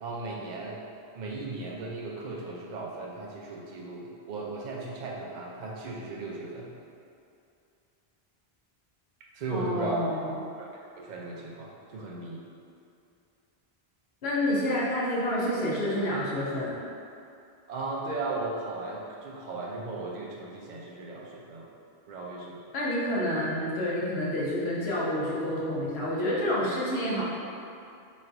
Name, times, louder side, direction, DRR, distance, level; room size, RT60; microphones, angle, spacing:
voice 1, 0.0-0.8 1.1-6.7 9.3-10.0 10.6-10.7 11.0-12.5 17.7-21.7 22.1-22.6, right 3 dB, 55° right, -3 dB, 0.6 m, -36 dB
voice 2, 9.5-10.3 14.2-16.7 22.7-27.2, left 1 dB, 80° left, -6 dB, 1.1 m, -28 dB
3.1 x 2.6 x 4.4 m, 2.5 s
omnidirectional pair, 1.0 m